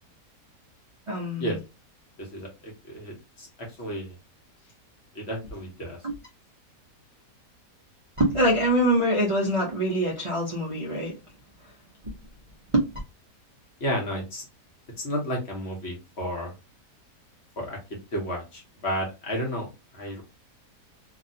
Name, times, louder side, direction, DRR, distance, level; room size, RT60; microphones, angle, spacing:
voice 1, 1.1-1.6 6.0-6.1 8.2-11.1 12.0-12.1 12.7-12.8, right 1 dB, 45° right, 0.4 m, -24 dB
voice 2, 2.2-4.2 5.1-6.0 13.8-14.5 15.0-16.5 17.6-19.7 19.9-20.2, equal, 45° left, 1.1 m, -32 dB
2.9 x 2.6 x 2.6 m
omnidirectional pair, 1.8 m